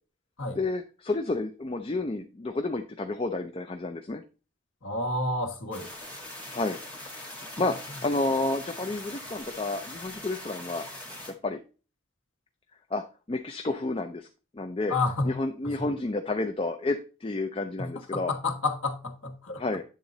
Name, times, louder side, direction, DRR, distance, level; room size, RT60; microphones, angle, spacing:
voice 1, 0.6-4.2 6.5-6.8 7.1-7.3 7.6-10.8 11.3-11.6 12.9-14.3 14.5-14.9 15.2-18.3 19.6-19.8, left 2 dB, 25° left, 0.4 m, -30 dB
voice 2, 4.8-5.9 14.9-15.4 15.6-15.8 17.8-19.6, left 2 dB, 75° left, 1.3 m, -30 dB
sound 1, 5.7-11.3, left 1 dB, 5° left, 1.6 m, -42 dB
8.9 x 3.8 x 4.0 m
head